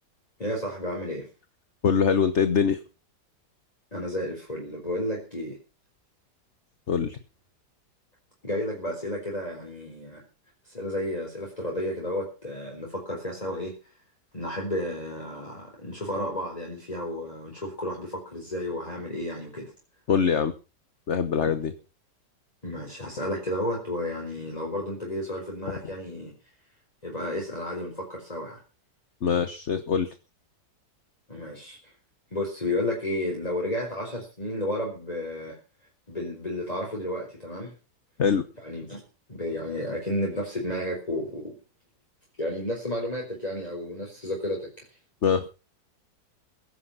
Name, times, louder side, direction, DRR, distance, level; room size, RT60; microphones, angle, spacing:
voice 1, 0.4-1.3 3.9-5.6 8.4-10.2 10.6-14.0 14.3-19.7 22.6-26.3 27.0-28.6 31.3-31.9 32.3-35.6 36.1-37.7 38.6-39.0 39.3-41.6 42.4-44.7, left 1 dB, 20° left, -1 dB, 4.4 m, -32 dB
voice 2, 1.8-2.8 6.9-7.2 20.1-20.5 21.1-21.7 29.2-30.1 38.2-38.4 45.2-45.5, left 6 dB, 45° left, 11 dB, 1.3 m, -23 dB
16.5 x 11.5 x 5.7 m, 0.34 s
omnidirectional pair, 1.8 m